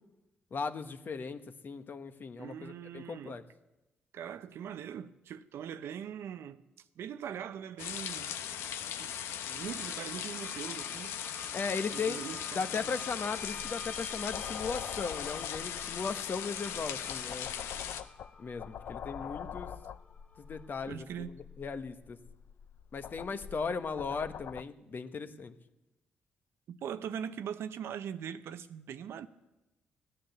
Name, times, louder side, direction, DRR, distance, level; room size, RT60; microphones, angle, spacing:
voice 1, 0.5-3.4 11.5-12.2 12.5-17.5 18.4-19.7 20.4-21.3 21.6-22.2 22.9-25.5, left 5 dB, 50° left, 1.2 m, -37 dB
voice 2, 2.4-3.4 4.1-8.4 9.0-9.1 9.5-11.2 11.9-12.9 20.9-21.3 23.3-23.4 26.7-29.3, right 8 dB, 75° right, 0.7 m, -41 dB
sound 1, 7.8-18.0, left 9 dB, 80° left, 0.8 m, -39 dB
sound 2, 9.0-20.9, left 2 dB, 30° left, 1.4 m, -51 dB
sound 3, 13.4-24.6, left 9 dB, 65° left, 0.4 m, -46 dB
16.0 x 10.0 x 6.8 m
supercardioid pair, 55°, 4 cm